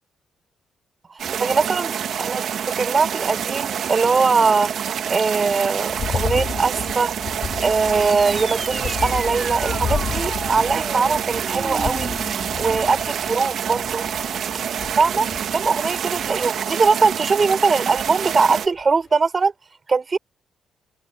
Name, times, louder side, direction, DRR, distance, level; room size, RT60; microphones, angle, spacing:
voice 1, 1.1-4.7 5.1-7.1 7.6-12.1 12.6-14.0 15.0-19.5 19.9-20.2, right 4 dB, 35° right, 4.5 m, -21 dB
sound 1, 1.2-18.7, right 8 dB, 65° right, 2.1 m, -27 dB
sound 2, 5.9-17.2 18.0-18.4 18.8-18.9, left 7 dB, 55° left, 4.7 m, -33 dB
sound 3, 7.9-12.9, right 2 dB, 15° right, 4.6 m, -36 dB
cardioid pair, 90°, 0 cm